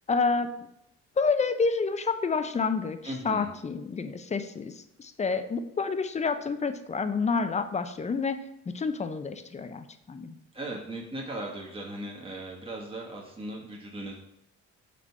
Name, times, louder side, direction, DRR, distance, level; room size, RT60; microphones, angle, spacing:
voice 1, 0.1-0.7 1.2-3.0 3.2-8.4 8.7-10.4, left 4 dB, 25° left, 9 dB, 0.5 m, -29 dB
voice 2, 3.0-3.5 10.5-14.2, right 1 dB, 20° right, -2 dB, 1.2 m, -38 dB
5.0 x 3.4 x 5.5 m, 0.80 s
cardioid pair, 90°, 30 cm